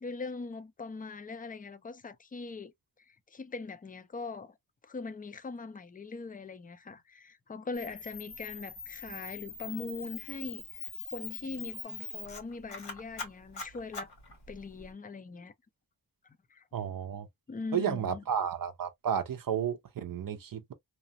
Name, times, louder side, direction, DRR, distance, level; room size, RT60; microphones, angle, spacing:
voice 1, 0.0-2.7 3.1-4.5 4.8-14.1 14.5-15.5 16.5-16.6 17.5-18.2, left 4 dB, 20° left, 0.4 m, -41 dB
Camera, 7.7-14.9, left 4 dB, 85° left, 1.4 m, -43 dB
voice 2, 16.7-17.3 17.7-20.7, right 8 dB, 55° right, 0.5 m, -32 dB
2.9 x 2.0 x 2.7 m
wide cardioid pair, 130°, 40 cm